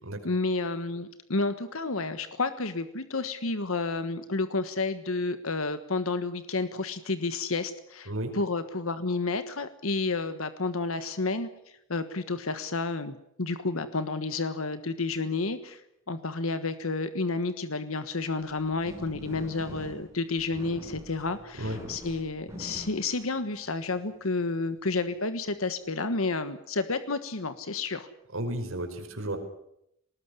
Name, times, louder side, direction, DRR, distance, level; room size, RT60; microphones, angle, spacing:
voice 1, 0.2-11.5 11.9-15.8 16.1-28.1, left 3 dB, 85° left, 11 dB, 1.5 m, -30 dB
voice 2, 8.1-8.4 21.6-21.8 28.3-29.4, right 1 dB, 80° right, 6 dB, 5.1 m, -33 dB
sound 1, 18.3-23.9, equal, 15° right, 6.6 m, -45 dB
20.0 x 19.5 x 9.8 m, 0.77 s
head